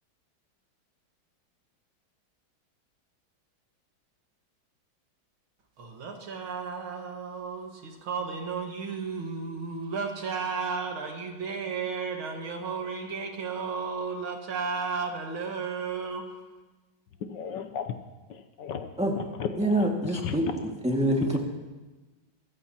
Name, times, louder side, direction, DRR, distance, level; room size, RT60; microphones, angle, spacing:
voice 1, 5.8-16.4, right 5 dB, 85° right, 3 dB, 2.5 m, -33 dB
voice 2, 17.2-17.9 18.3-19.9 20.2-20.5, left 7 dB, 65° left, 8 dB, 1.4 m, -35 dB
voice 3, 19.6-20.5 20.8-21.4, right 1 dB, 5° right, 0 dB, 1.8 m, -25 dB
24.5 x 14.0 x 2.9 m, 1.2 s
omnidirectional pair, 2.2 m